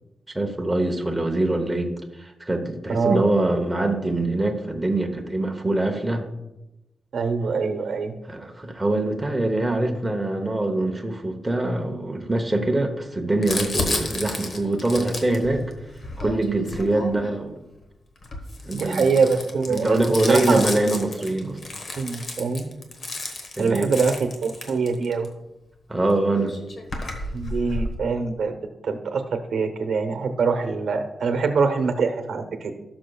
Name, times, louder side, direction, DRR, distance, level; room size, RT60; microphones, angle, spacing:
voice 1, 0.3-6.3 8.3-15.7 16.2-17.6 18.6-19.1 19.7-21.6 23.6-23.9 25.9-26.6, right 2 dB, 10° right, 2 dB, 0.8 m, -24 dB
voice 2, 2.9-3.2 7.1-8.1 18.7-20.7 21.4-21.5 22.0-22.6 23.6-25.3 27.3-28.6 28.8-29.2 29.5-32.7, right 4 dB, 75° right, 7 dB, 0.9 m, -24 dB
Crumpling crinkling, 13.4-17.5 18.2-25.3 26.1-26.2 26.4-28.0, left 2 dB, 45° left, 1.2 m, -32 dB
17.0 x 6.1 x 2.3 m, 0.98 s
wide cardioid pair, 160°, 0 cm